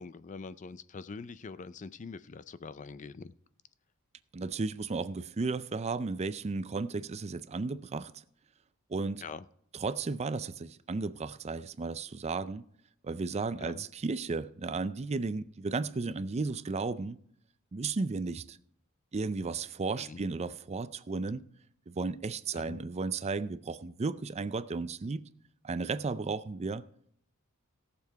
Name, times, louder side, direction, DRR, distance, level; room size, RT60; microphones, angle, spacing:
voice 1, 0.0-3.3 9.2-9.4 13.6-13.8 20.0-20.2 22.5-22.8, left 4 dB, 35° left, 0.4 m, -44 dB
voice 2, 4.3-8.1 8.9-9.2 9.8-12.7 13.0-17.2 17.7-18.6 19.1-21.4 21.9-25.2 25.6-26.8, right 4 dB, 30° right, 0.4 m, -34 dB
18.0 x 7.0 x 4.7 m
head